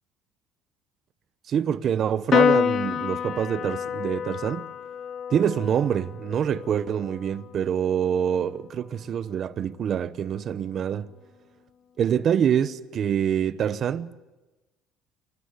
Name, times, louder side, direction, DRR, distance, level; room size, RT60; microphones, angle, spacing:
voice 1, 1.5-4.7 5.3-11.1 12.0-14.2, right 8 dB, 45° right, 0.9 m, -25 dB
Piano, 2.3-9.0, left 8 dB, 45° left, 0.9 m, -28 dB
27.5 x 13.5 x 9.6 m
cardioid pair, 110°, 0 cm